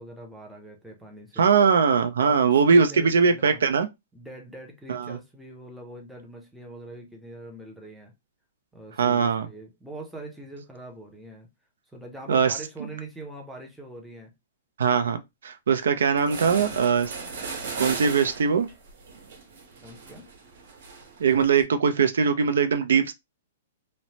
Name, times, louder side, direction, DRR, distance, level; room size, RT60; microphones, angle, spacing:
voice 1, 0.0-1.5 2.2-3.6 4.1-8.1 8.7-11.5 11.9-14.3 19.8-20.3, right 1 dB, ahead, 0.5 m, -43 dB
voice 2, 1.4-3.9 4.9-5.2 9.0-9.5 12.3-12.5 14.8-15.2 15.4-17.1 17.8-18.7 21.2-23.1, right 6 dB, 90° right, 0.5 m, -21 dB
sound 1, 15.8-15.9 16.2-21.6, right 4 dB, 55° right, 1.1 m, -37 dB
3.1 x 2.0 x 2.7 m
hypercardioid pair, 180°, 0 cm